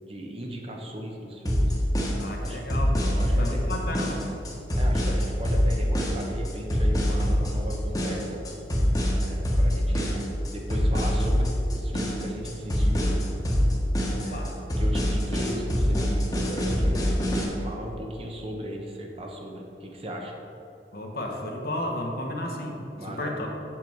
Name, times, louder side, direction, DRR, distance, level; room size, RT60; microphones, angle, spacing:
voice 1, 0.0-1.7 2.4-2.6 3.1-3.9 4.7-8.4 9.0-10.1 10.5-13.2 14.2-17.1 17.6-20.3 22.9-23.5, equal, 35° right, 1 dB, 1.0 m, -36 dB
sound 1, 1.5-17.5, equal, 20° left, 1.3 m, -24 dB
voice 2, 2.2-4.3 14.1-14.5 20.9-23.5, left 1 dB, 60° left, 1 dB, 1.1 m, -33 dB
7.6 x 7.0 x 4.6 m, 2.8 s
head